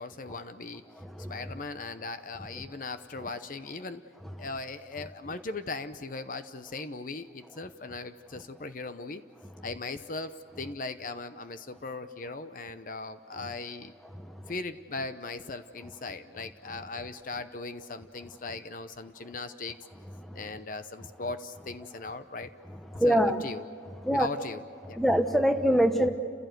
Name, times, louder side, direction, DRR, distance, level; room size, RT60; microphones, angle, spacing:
voice 1, 0.0-0.8 1.3-4.0 4.4-9.2 9.6-13.9 14.5-19.8 20.3-22.5 23.0-23.6 24.1-24.6 24.9-25.0, left 3 dB, 50° left, 10 dB, 0.8 m, -38 dB
voice 2, 1.0-1.5 2.5-2.6 3.2-3.3 4.2-4.3 22.7-23.4 24.0-24.3 24.9-26.1, equal, ahead, 7 dB, 1.0 m, -25 dB
29.5 x 16.0 x 8.0 m, 2.3 s
head